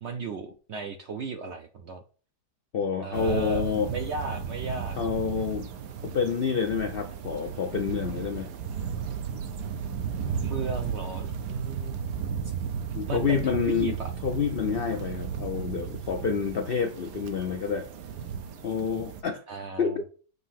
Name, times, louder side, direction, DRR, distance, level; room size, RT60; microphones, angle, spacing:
voice 1, 0.0-2.0 3.0-5.0 10.4-12.0 13.1-14.1 19.5-20.0, right 4 dB, 65° right, 5 dB, 0.7 m, -35 dB
voice 2, 2.7-3.9 5.0-5.7 6.0-8.5 12.9-17.9 18.6-19.4 19.8-20.0, left 6 dB, 70° left, 6 dB, 0.5 m, -28 dB
sound 1, 3.1-19.2, right 7 dB, 85° right, 1.3 m, -34 dB
6.8 x 2.8 x 5.7 m, 0.40 s
omnidirectional pair, 1.7 m